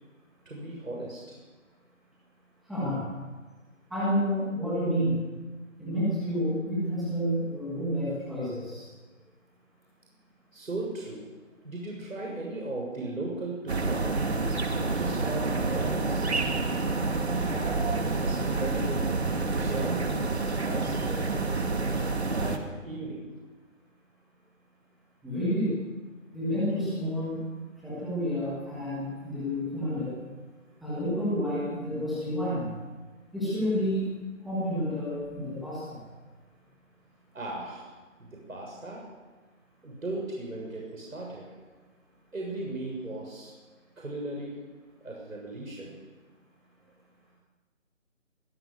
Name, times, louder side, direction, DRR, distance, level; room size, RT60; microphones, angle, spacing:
voice 1, 0.5-1.4 10.5-11.3 11.6-14.2 15.0-16.3 17.0-19.2 19.5-20.3 20.6-21.4 22.3-23.3 37.3-37.9 38.2-39.1 39.8-41.5 42.3-43.5 44.0-44.6 45.0-46.0, right 2 dB, 85° right, -2 dB, 6.9 m, -37 dB
voice 2, 3.9-5.2 5.8-8.8 25.2-25.7 26.3-27.4 27.8-30.1 30.8-32.7 33.3-34.0 34.4-36.0, equal, ahead, -11 dB, 1.4 m, -29 dB
sound 1, 13.7-22.6, right 3 dB, 55° right, 2.5 m, -28 dB
23.5 x 14.5 x 7.9 m, 1.3 s
figure-of-eight pair, 170°, 39 cm